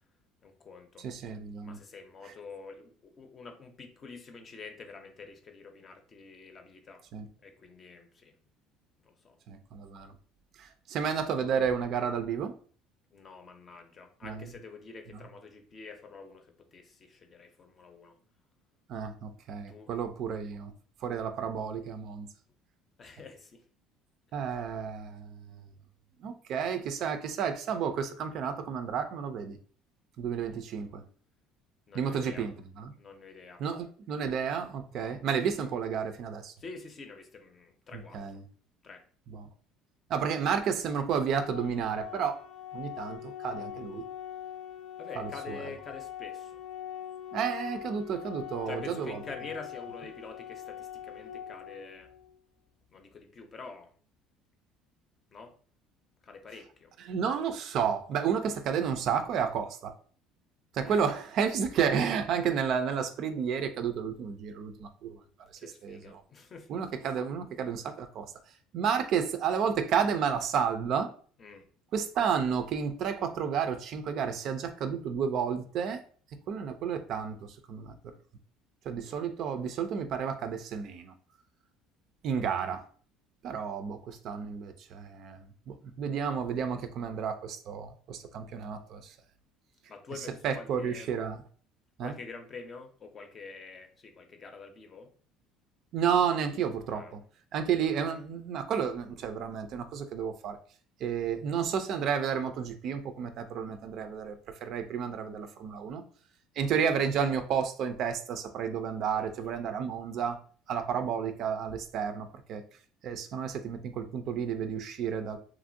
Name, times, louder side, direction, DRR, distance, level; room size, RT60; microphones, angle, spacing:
voice 1, 0.4-1.1 1.6-7.0 7.4-8.3 9.0-9.4 13.1-18.1 19.7-19.9 23.0-23.6 31.9-32.5 33.0-33.6 34.9-35.2 36.6-38.4 38.8-39.0 45.0-46.6 48.7-52.1 52.9-53.9 55.3-55.6 56.2-56.9 60.8-61.0 65.6-66.7 71.4-71.7 79.0-79.2 89.9-91.1 92.0-95.1 96.9-97.2 109.1-109.3, left 4 dB, 35° left, 5 dB, 0.6 m, -47 dB
voice 2, 1.0-1.8 7.1-7.3 9.5-10.1 10.6-12.5 14.2-14.5 18.9-20.7 21.0-22.3 24.3-25.4 26.2-29.6 30.2-31.0 31.9-32.9 33.6-36.5 37.9-38.4 39.3-39.5 40.1-42.4 42.7-44.1 45.2-45.7 47.3-49.2 57.1-59.9 60.7-65.2 65.6-66.2 66.7-68.3 68.7-71.1 71.9-76.0 76.5-77.9 78.9-81.1 82.2-82.8 83.4-89.1 90.4-91.4 92.0-92.1 95.9-97.2 97.5-100.6 101.0-106.0 106.6-110.4 110.7-112.6 113.0-115.4, right 7 dB, 60° right, 8 dB, 0.4 m, -31 dB
Organ, 41.4-52.4, left 10 dB, 80° left, 0.3 m, -42 dB
3.0 x 2.5 x 2.6 m, 0.44 s
supercardioid pair, 105°, 0 cm